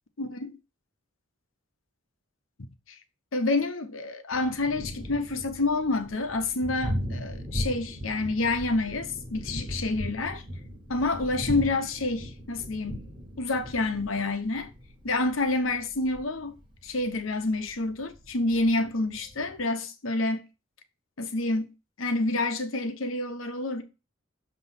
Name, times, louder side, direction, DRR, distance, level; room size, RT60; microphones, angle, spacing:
voice 1, 0.2-0.5 3.3-10.4 10.9-13.0 13.4-14.7 15.0-16.5 16.8-20.4 21.2-21.7 22.0-23.8, left 2 dB, 85° left, 1.0 m, -28 dB
Thunder, 4.3-19.6, equal, 25° right, 1.2 m, -38 dB
6.9 x 3.1 x 5.8 m
head